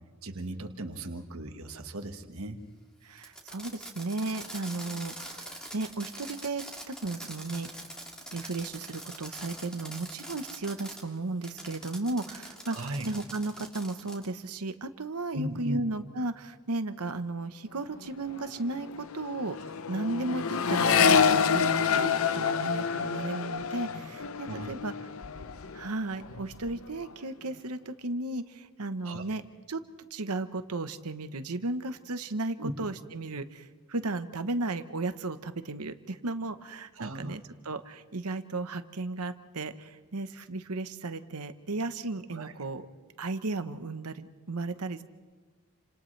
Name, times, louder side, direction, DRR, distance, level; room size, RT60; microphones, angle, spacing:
voice 1, 0.2-2.6 12.7-13.1 15.3-15.8 22.4-22.7 24.5-24.8 29.0-29.3 32.6-32.7 37.0-37.4 42.3-42.5, right 1 dB, 70° right, 5 dB, 1.5 m, -37 dB
voice 2, 3.0-7.7 8.3-24.9 25.7-29.4 29.7-29.8 30.1-42.9 43.2-45.0, right 2 dB, 85° right, 10 dB, 1.1 m, -35 dB
Fireworks, 3.2-11.0 11.4-14.3, right 1 dB, 5° left, 2.4 m, -43 dB
Accelerating revving vroom, 17.9-18.1 18.3-25.9 26.2-26.8, left 6 dB, 65° left, 0.6 m, -27 dB
29.5 x 26.5 x 3.3 m, 1.4 s
head